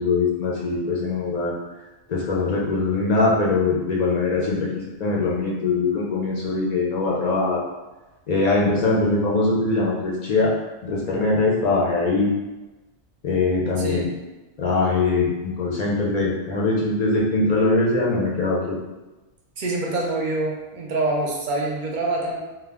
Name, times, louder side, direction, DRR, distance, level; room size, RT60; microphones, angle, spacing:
voice 1, 0.0-1.5 2.1-7.6 8.3-10.5 10.8-12.3 13.2-14.0 14.6-18.8, left 3 dB, 55° left, -4 dB, 0.4 m, -22 dB
voice 2, 13.8-14.1 19.6-22.4, right 2 dB, 55° right, -2 dB, 0.6 m, -25 dB
2.2 x 2.1 x 3.4 m, 1.1 s
omnidirectional pair, 1.2 m